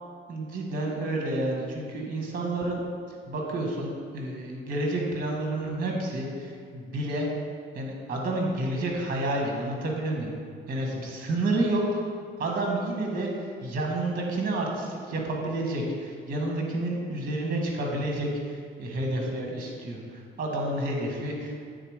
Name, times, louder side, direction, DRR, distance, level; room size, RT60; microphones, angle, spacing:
voice 1, 0.3-2.8 3.3-7.3 7.7-10.3 10.7-12.0 12.4-21.7, right 1 dB, 45° right, 0 dB, 1.5 m, -30 dB
8.8 x 3.9 x 4.9 m, 2.1 s
cardioid pair, 90°, 20 cm